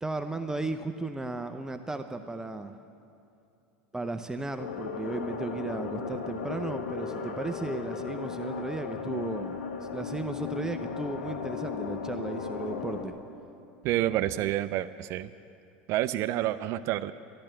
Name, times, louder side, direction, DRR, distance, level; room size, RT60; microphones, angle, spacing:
voice 1, 0.0-2.7 3.9-13.2, right 2 dB, 10° right, 7 dB, 0.6 m, -35 dB
Tension Ambience, 4.6-13.1, left 5 dB, 85° left, 1.3 m, -36 dB
voice 2, 13.8-15.3 15.9-17.1, right 13 dB, 55° right, 13 dB, 0.4 m, -28 dB
12.5 x 10.5 x 8.9 m, 2.6 s
hypercardioid pair, 90°, 6 cm